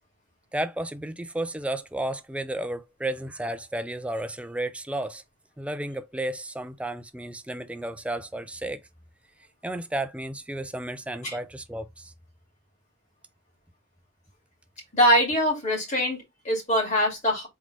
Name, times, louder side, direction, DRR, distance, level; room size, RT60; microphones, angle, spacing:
voice 1, 0.5-5.2 5.6-8.8 9.6-12.1, right 1 dB, 5° right, 0.3 m, -32 dB
voice 2, 14.9-17.5, equal, 35° left, 2.4 m, -23 dB
3.9 x 3.2 x 3.3 m
head